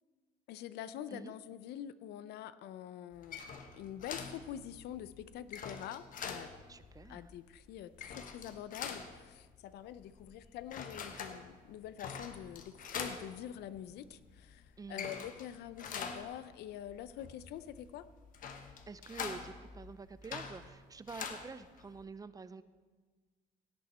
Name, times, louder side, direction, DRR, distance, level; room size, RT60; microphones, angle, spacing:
voice 1, 0.5-6.5 7.1-18.1, left 10 dB, 75° left, 14 dB, 0.5 m, -46 dB
sound 1, 3.1-22.0, left 6 dB, 55° left, 1.1 m, -46 dB
voice 2, 6.7-7.3 14.8-15.2 18.9-22.6, right 4 dB, 20° right, 14 dB, 0.5 m, -48 dB
17.0 x 8.5 x 4.3 m, 1.4 s
cardioid pair, 110°, 17 cm